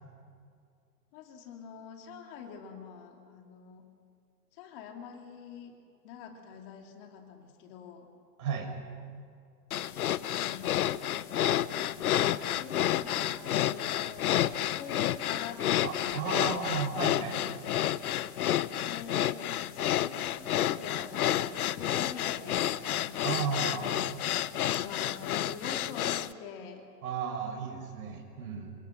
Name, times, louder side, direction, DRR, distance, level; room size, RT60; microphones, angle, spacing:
voice 1, 1.1-3.9 4.5-5.8 6.0-8.1 10.2-11.0 12.4-16.6 18.8-19.4 19.7-24.2 24.7-26.8, left 6 dB, 35° left, 3 dB, 2.8 m, -45 dB
voice 2, 8.4-8.7 15.8-17.4 23.2-23.8 27.0-28.8, right 6 dB, 60° right, 4 dB, 6.0 m, -34 dB
sound 1, 9.7-26.3, left 12 dB, 60° left, 0.9 m, -30 dB
28.5 x 26.0 x 6.0 m, 2.3 s
hypercardioid pair, 155°, 50 cm